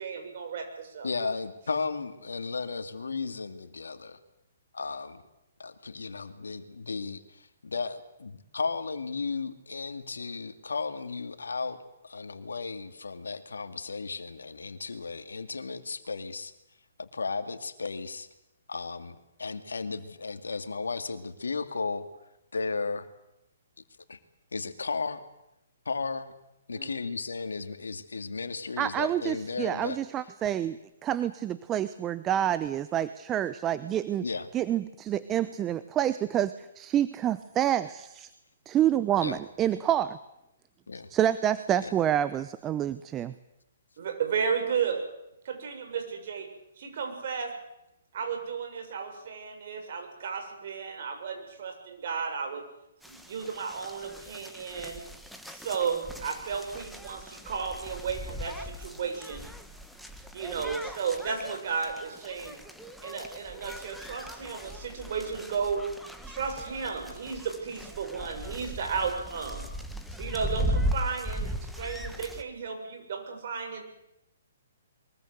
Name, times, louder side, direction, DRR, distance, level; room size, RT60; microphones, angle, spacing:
voice 1, 0.0-1.1 26.7-27.0 44.0-45.0 45.4-46.5 46.8-47.5 48.1-52.6 53.1-55.0 55.5-59.4 60.3-62.6 63.0-65.8 66.3-69.7 70.2-73.8, right 6 dB, 55° right, 5 dB, 6.7 m, -33 dB
voice 2, 1.0-4.2 4.7-5.2 5.6-11.8 12.0-16.5 17.0-18.3 18.7-22.1 22.5-23.1 24.1-24.2 24.5-25.2 25.9-26.3 26.7-30.0 34.2-34.5 39.2-39.4 40.9-41.1 41.8-41.9, left 4 dB, 80° left, 9 dB, 2.3 m, -34 dB
voice 3, 28.8-34.2 34.5-38.3 38.7-40.2 41.1-43.3, right 11 dB, 20° right, 14 dB, 0.9 m, -28 dB
sound 1, 53.0-72.4, equal, ahead, 1.7 m, -38 dB
23.0 x 21.5 x 8.1 m, 0.87 s
figure-of-eight pair, 130°, 0 cm